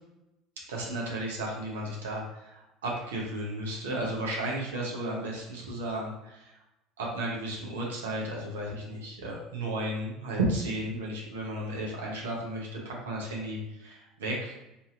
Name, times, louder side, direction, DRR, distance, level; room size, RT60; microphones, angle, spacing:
voice 1, 0.7-6.5 7.0-14.5, right 1 dB, 85° right, -3 dB, 0.7 m, -34 dB
2.7 x 2.6 x 2.4 m, 0.93 s
hypercardioid pair, 80°, 0 cm